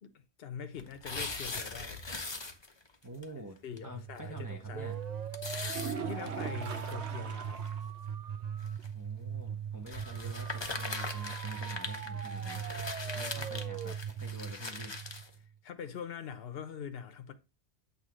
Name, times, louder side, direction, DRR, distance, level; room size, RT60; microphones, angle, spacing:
voice 1, 0.0-2.0 3.6-4.9 6.0-7.6 9.5-9.6 15.6-17.3, left 7 dB, 60° left, 1.1 m, -43 dB
sound 1, 0.8-2.9 3.2-3.3 3.8-3.9 4.2-4.3 5.3-6.9 7.6-7.7 8.6-8.9 9.9-15.3, left 3 dB, 25° left, 0.9 m, -40 dB
voice 2, 3.0-4.9 8.9-12.7 13.1-15.2, right 1 dB, 20° right, 1.1 m, -48 dB
sound 2, 3.7-15.6, right 7 dB, 45° right, 0.6 m, -39 dB
sound 3, 5.6-7.9 8.2-8.3 8.8-8.9 12.6-12.7, right 5 dB, 75° right, 1.2 m, -41 dB
8.5 x 3.4 x 6.2 m
omnidirectional pair, 1.1 m